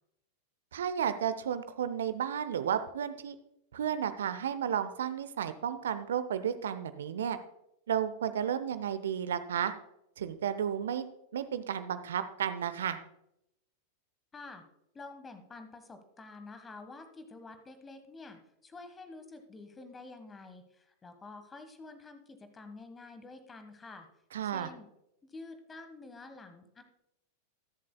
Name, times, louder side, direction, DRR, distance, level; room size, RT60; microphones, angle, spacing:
voice 1, 0.7-3.4 3.7-7.4 7.9-9.7 10.2-11.1 11.3-13.0 24.3-24.7, right 9 dB, 65° right, 12 dB, 0.6 m, -32 dB
voice 2, 14.3-14.6 14.9-24.1 24.4-24.9 25.2-26.8, left 3 dB, 15° left, 9 dB, 1.3 m, -49 dB
21.5 x 7.4 x 2.2 m, 0.81 s
figure-of-eight pair, 90°, 0 cm